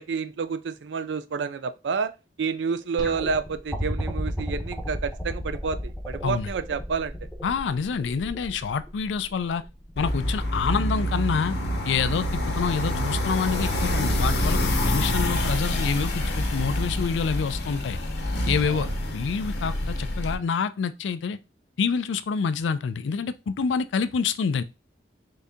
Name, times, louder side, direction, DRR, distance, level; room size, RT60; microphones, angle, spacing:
voice 1, 0.0-2.1 2.4-7.2 18.6-18.9, right 5 dB, 75° right, 0.4 m, -29 dB
sound 1, 3.0-10.1 11.3-11.4, equal, 5° left, 0.7 m, -34 dB
voice 2, 7.4-9.6 10.0-11.6 11.8-18.0 18.5-21.4 21.8-24.6, left 6 dB, 85° left, 0.4 m, -27 dB
sound 2, 10.0-20.3, left 1 dB, 60° left, 0.8 m, -27 dB
3.8 x 2.7 x 3.5 m
head